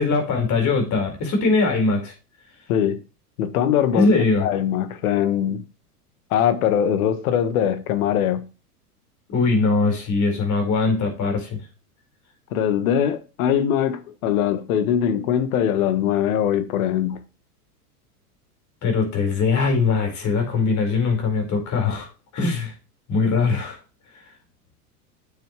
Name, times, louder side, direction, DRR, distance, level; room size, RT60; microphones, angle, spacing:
voice 1, 0.0-2.1 3.9-4.5 9.3-11.6 18.8-22.1 22.3-22.7 23.1-23.8, left 3 dB, 35° left, 4.9 m, -21 dB
voice 2, 2.7-3.0 3.4-4.1 4.4-5.6 6.3-8.4 12.5-17.2, left 9 dB, 60° left, 1.6 m, -21 dB
9.2 x 7.2 x 3.2 m
hypercardioid pair, 100°, 47 cm